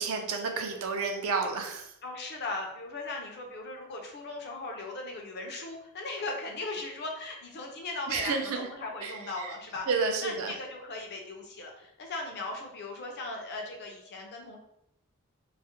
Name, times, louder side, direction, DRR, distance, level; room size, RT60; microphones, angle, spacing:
voice 1, 0.0-1.9 8.1-8.6 9.0-9.5 9.9-10.5, right 4 dB, 65° right, 4 dB, 0.4 m, -30 dB
voice 2, 2.0-9.9 10.2-14.6, left 2 dB, 50° left, 2 dB, 0.5 m, -38 dB
2.3 x 2.0 x 2.8 m, 0.79 s
head